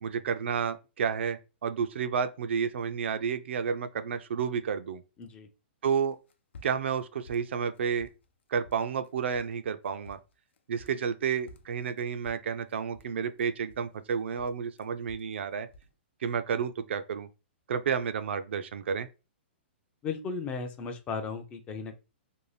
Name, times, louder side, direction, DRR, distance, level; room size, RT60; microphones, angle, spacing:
voice 1, 0.0-5.0 5.8-6.2 6.6-8.1 8.5-10.2 10.7-15.7 16.2-17.3 17.7-19.1, right 6 dB, 75° right, 0.3 m, -31 dB
sound 1, 6.1-7.0 7.3-8.3 8.6-9.1 9.3-9.6 9.9-11.1 11.5-14.1 14.4-15.4 15.7-15.9, left 2 dB, 85° left, 0.4 m, -53 dB
voice 2, 20.0-21.9, left 5 dB, 15° left, 0.4 m, -35 dB
2.6 x 2.1 x 3.2 m
hypercardioid pair, 155°, 6 cm